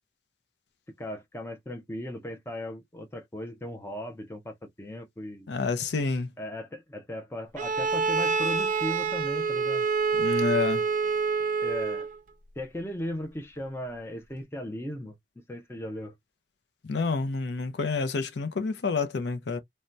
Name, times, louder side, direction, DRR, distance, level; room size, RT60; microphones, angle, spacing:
voice 1, 1.0-5.5 6.4-9.9 11.6-12.1 12.6-16.1, left 1 dB, 15° left, 0.5 m, -37 dB
voice 2, 5.5-6.3 10.1-10.8 16.9-19.6, left 4 dB, 65° left, 0.5 m, -28 dB
Bowed string instrument, 7.6-12.2, right 5 dB, 45° right, 0.4 m, -27 dB
3.2 x 2.1 x 2.6 m
head